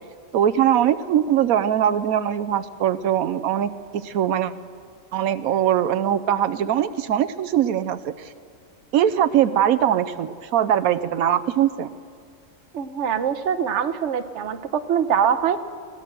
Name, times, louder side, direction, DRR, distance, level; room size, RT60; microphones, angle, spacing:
voice 1, 0.3-4.5 5.1-8.3 8.9-11.9, right 10 dB, 90° right, 11 dB, 1.2 m, -21 dB
voice 2, 12.7-15.6, right 8 dB, 60° right, 10 dB, 1.2 m, -23 dB
22.5 x 17.5 x 6.8 m, 2.2 s
omnidirectional pair, 1.4 m